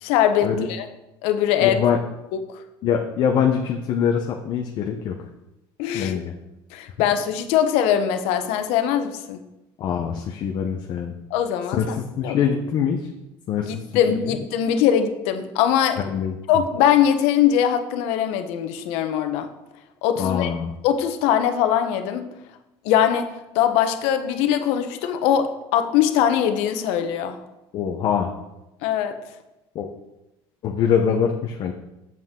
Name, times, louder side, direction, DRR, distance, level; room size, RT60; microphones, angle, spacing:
voice 1, 0.0-0.9 1.2-1.8 2.3-2.4 5.8-6.2 6.7-9.4 11.3-12.0 12.2-12.4 13.6-16.0 16.5-19.5 20.0-20.5 20.8-22.3 22.8-23.3 23.5-27.4 28.8-29.2, left 9 dB, 75° left, 7 dB, 0.9 m, -21 dB
voice 2, 1.6-2.0 2.8-5.2 5.9-6.3 9.8-11.1 11.7-13.1 13.5-14.4 16.0-16.4 20.2-20.7 27.7-28.3 29.7-29.9 30.6-31.7, left 7 dB, 45° left, 2 dB, 0.7 m, -24 dB
8.0 x 7.6 x 3.7 m, 0.95 s
cardioid pair, 155°, 10 cm